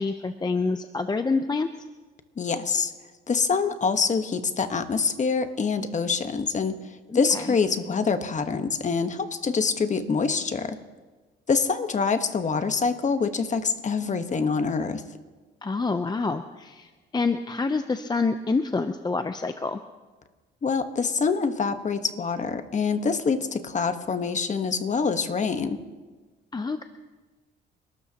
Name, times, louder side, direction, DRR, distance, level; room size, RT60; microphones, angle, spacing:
voice 1, 0.0-1.7 7.1-7.5 15.6-19.8 26.5-26.8, left 4 dB, 20° left, 9 dB, 0.6 m, -27 dB
voice 2, 2.4-2.9 3.3-10.8 11.5-15.0 20.6-25.8, left 5 dB, 35° left, 9 dB, 1.2 m, -25 dB
28.5 x 13.0 x 2.9 m, 1.3 s
cardioid pair, 90°, 20 cm